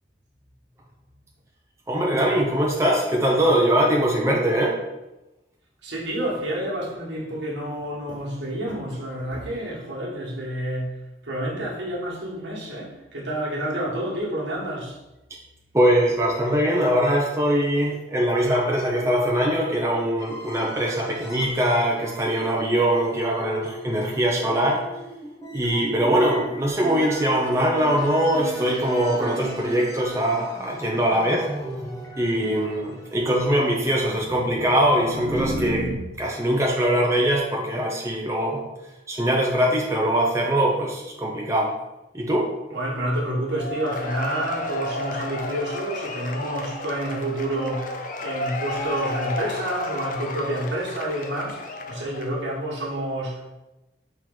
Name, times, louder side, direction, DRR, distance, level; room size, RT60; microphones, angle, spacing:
voice 1, 1.9-4.8 15.7-24.8 25.5-31.5 32.2-35.9 36.2-38.7 39.1-41.7 42.1-42.5, right 1 dB, 15° right, -2 dB, 0.5 m, -22 dB
voice 2, 5.8-11.0 11.2-15.0 42.7-53.4, right 1 dB, 85° right, -4 dB, 1.3 m, -29 dB
sound 1, 20.2-36.0, equal, 15° left, 0.7 m, -36 dB
Cheering / Applause / Crowd, 43.5-52.5, left 2 dB, 45° left, 0.5 m, -32 dB
4.6 x 3.0 x 3.8 m, 1.0 s
head